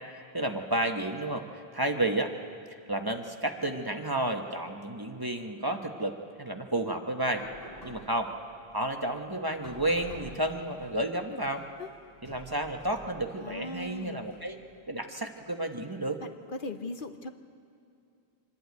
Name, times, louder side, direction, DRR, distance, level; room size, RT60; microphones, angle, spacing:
voice 1, 0.3-2.3 2.7-7.4 7.8-8.3 8.7-11.6 12.2-14.6 14.9-16.2, right 1 dB, 25° right, 4 dB, 1.0 m, -31 dB
sound 1, 7.3-14.8, equal, 40° left, 6.3 m, -51 dB
voice 2, 13.4-14.2 16.2-16.3 16.6-17.3, left 2 dB, 60° left, 7 dB, 1.0 m, -38 dB
25.5 x 11.0 x 9.4 m, 2.5 s
omnidirectional pair, 1.0 m